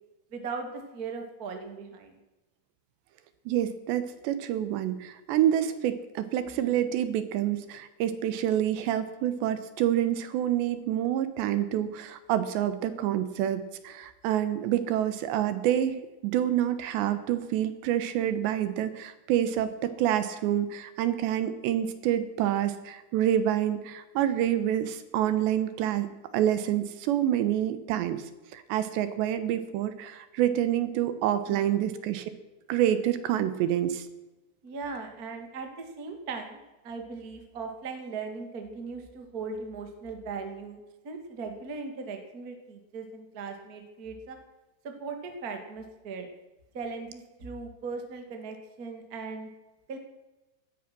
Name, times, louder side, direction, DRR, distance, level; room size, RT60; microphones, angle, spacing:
voice 1, 0.3-2.1 6.5-6.7 31.5-31.7 34.6-36.6 36.8-40.8 41.0-44.4 44.8-46.3 46.7-49.5 49.9-50.0, right 4 dB, 35° right, 5 dB, 1.5 m, -38 dB
voice 2, 3.5-26.1 26.3-28.2 28.5-32.3 32.7-34.1, right 11 dB, 75° right, 12 dB, 3.2 m, -27 dB
17.5 x 13.5 x 6.1 m, 1.1 s
omnidirectional pair, 5.3 m